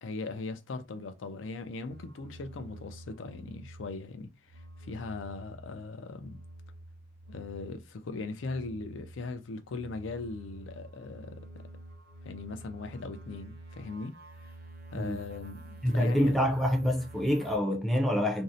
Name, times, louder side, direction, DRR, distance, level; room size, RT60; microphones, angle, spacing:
voice 1, 0.0-6.4 7.3-11.6 12.2-14.1 14.9-16.4, left 3 dB, 70° left, 0.4 m, -39 dB
sound 1, 1.9-4.1 4.4-7.9 8.3-17.6, right 1 dB, 55° right, 0.6 m, -49 dB
voice 2, 15.8-18.4, equal, ahead, 0.4 m, -26 dB
2.6 x 2.0 x 2.5 m
head